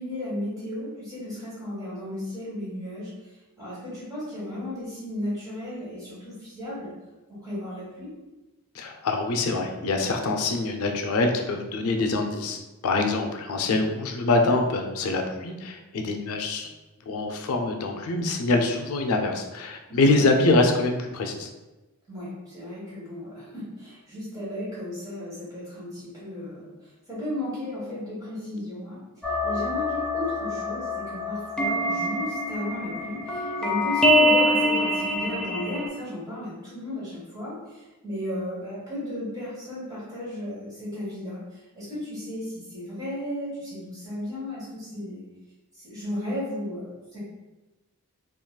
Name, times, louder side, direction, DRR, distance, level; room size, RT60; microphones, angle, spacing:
voice 1, 0.0-3.1 3.6-6.9 7.3-8.1 19.9-20.3 22.1-26.7 27.1-29.0 29.4-41.4 41.7-45.2 45.8-47.2, left 1 dB, 15° right, -9 dB, 1.4 m, -34 dB
voice 2, 8.7-16.7 17.1-21.5, left 2 dB, 70° left, 4 dB, 0.4 m, -25 dB
sound 1, 29.2-35.9, left 1 dB, 5° left, 0.4 m, -25 dB
3.7 x 2.3 x 2.2 m, 1.1 s
head